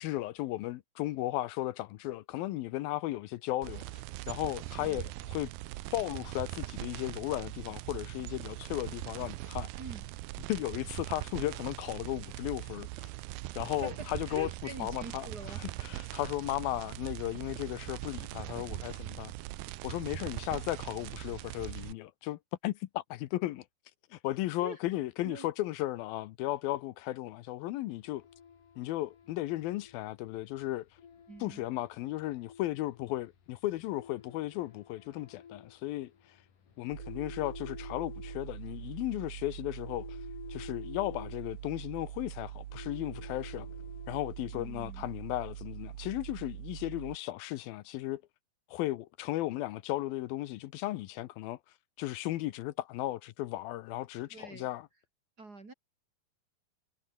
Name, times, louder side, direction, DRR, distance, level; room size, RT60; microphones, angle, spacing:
voice 1, 0.0-3.8 4.3-5.5 5.9-9.7 10.5-13.1 13.6-14.5 14.8-19.3 19.8-23.7 24.1-28.2 28.8-30.9 31.4-36.1 36.8-40.2 40.5-43.7 44.1-48.2 48.7-51.6 52.0-54.9, left 16 dB, 80° left, 2.6 m, -35 dB
sound 1, 3.6-21.9, right 18 dB, 90° right, 2.5 m, -41 dB
voice 2, 4.7-5.0 9.8-10.1 13.8-15.6 24.6-24.8 25.2-25.5 31.3-31.7 44.5-45.1 54.3-54.7 55.4-55.7, right 3 dB, 25° right, 3.1 m, -45 dB
sound 2, 28.0-44.6, left 7 dB, 60° left, 4.7 m, -52 dB
sound 3, 36.9-47.2, right 12 dB, 65° right, 2.1 m, -44 dB
omnidirectional pair, 4.3 m